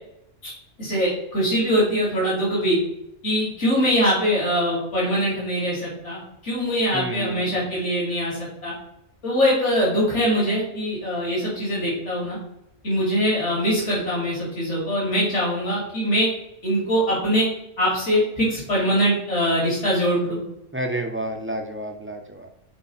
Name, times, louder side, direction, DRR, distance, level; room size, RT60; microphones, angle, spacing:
voice 1, 0.8-2.8 3.2-8.7 9.2-12.4 12.8-16.3 16.6-17.5 17.8-20.4, equal, 70° left, -6 dB, 3.2 m, -22 dB
voice 2, 6.9-7.7 20.7-22.5, right 1 dB, 15° right, 3 dB, 0.6 m, -30 dB
6.1 x 4.6 x 4.2 m, 0.81 s
omnidirectional pair, 1.2 m